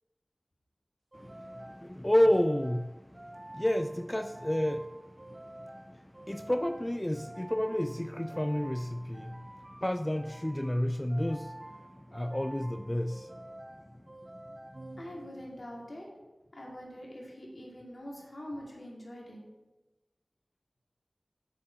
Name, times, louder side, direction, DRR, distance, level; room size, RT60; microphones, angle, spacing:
voice 1, 1.1-13.6 13.9-14.0 14.3-14.4, left 1 dB, 20° left, 9 dB, 0.3 m, -31 dB
sound 1, 1.1-15.7, right 1 dB, 40° right, 0.6 m, -49 dB
voice 2, 15.0-16.1 16.5-19.4, equal, 65° left, -3 dB, 2.4 m, -44 dB
7.4 x 6.6 x 4.5 m, 1.1 s
wide cardioid pair, 40°, 0 cm